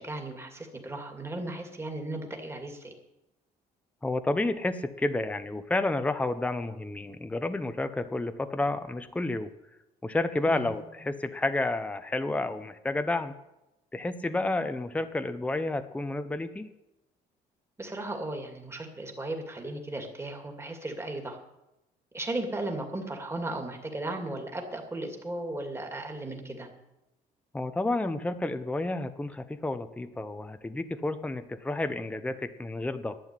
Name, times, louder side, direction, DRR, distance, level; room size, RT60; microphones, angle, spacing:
voice 1, 0.0-2.9 10.5-10.7 17.8-21.4 22.1-26.7, right 2 dB, 15° right, 3 dB, 2.5 m, -36 dB
voice 2, 4.0-9.5 10.0-13.3 13.9-16.7 27.5-33.2, left 2 dB, 10° left, 9 dB, 0.8 m, -30 dB
11.5 x 8.1 x 9.9 m, 0.95 s
cardioid pair, 110°, 17 cm